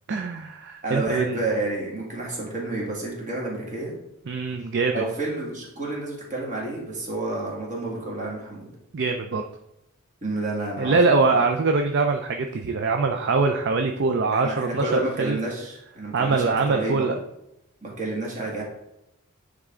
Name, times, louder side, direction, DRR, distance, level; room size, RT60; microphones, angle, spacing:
voice 1, 0.1-1.4 4.3-5.0 8.9-9.4 10.8-15.4 16.1-17.2, right 4 dB, 55° right, 5 dB, 0.5 m, -23 dB
voice 2, 0.8-3.9 4.9-8.7 10.2-11.0 14.3-17.1 17.8-18.6, right 2 dB, 35° right, -3 dB, 2.1 m, -30 dB
9.7 x 3.6 x 3.7 m, 0.86 s
head